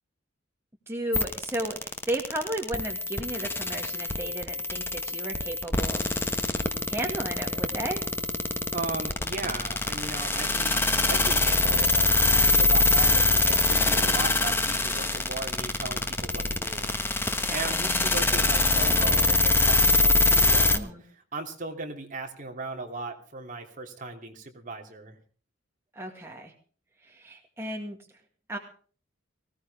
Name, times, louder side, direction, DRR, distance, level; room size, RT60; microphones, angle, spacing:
voice 1, 0.9-6.2 6.9-8.0 17.5-17.8 20.7-21.0 25.9-26.5 27.0-28.0 28.5-28.6, right 1 dB, 10° right, 1 dB, 2.0 m, -34 dB
sound 1, 1.1-20.8, left 2 dB, 10° left, 1.1 m, -24 dB
voice 2, 8.7-17.0 17.3-25.1, right 3 dB, 40° right, 3 dB, 2.9 m, -37 dB
19.5 x 17.0 x 3.5 m, 0.42 s
head